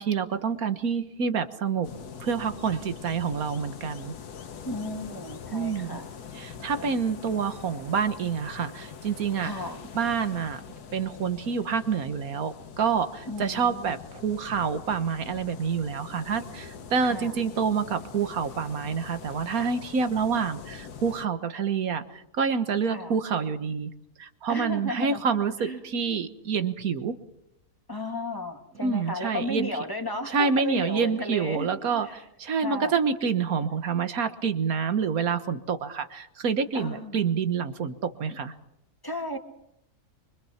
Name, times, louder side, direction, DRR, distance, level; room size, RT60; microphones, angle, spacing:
voice 1, 0.0-1.9 2.2-4.1 5.5-6.0 6.3-9.5 9.9-10.6 10.9-23.9 24.2-27.2 28.8-29.7 30.3-38.5, right 6 dB, 65° right, 10 dB, 1.8 m, -27 dB
sound 1, 1.8-21.3, left 7 dB, 85° left, 1.7 m, -43 dB
voice 2, 4.7-6.1 6.8-7.0 9.4-9.8 13.3-14.0 17.0-17.4 22.9-23.1 24.5-25.2 25.6-25.8 27.9-31.7 32.0-32.1 32.6-33.0 36.7-37.2 39.0-39.4, left 1 dB, 15° left, 4 dB, 2.0 m, -34 dB
24.5 x 24.0 x 5.8 m, 0.79 s
omnidirectional pair, 1.6 m